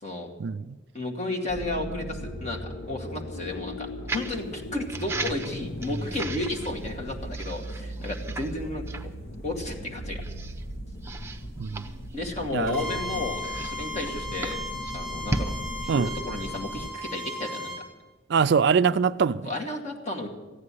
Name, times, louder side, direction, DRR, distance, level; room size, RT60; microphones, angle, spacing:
voice 1, 0.4-0.8 11.6-11.8 12.5-12.8 15.9-16.1 18.3-19.5, right 6 dB, 55° right, 0.4 m, -23 dB
voice 2, 0.9-2.6 2.9-9.1 9.4-10.2 12.1-14.6 14.9-15.5 15.8-17.7 19.4-20.3, left 2 dB, 35° left, 2.3 m, -33 dB
sound 1, 1.5-16.9, equal, 50° left, 1.3 m, -38 dB
sound 2, 4.1-4.4 4.9-6.9 7.3-8.6 8.9-9.1 9.6-9.7 10.2-10.6 11.0-12.7 13.3-15.5, right 3 dB, 15° right, 0.8 m, -36 dB
Bowed string instrument, 12.7-17.8, left 1 dB, 5° left, 4.4 m, -36 dB
14.5 x 9.7 x 9.7 m
head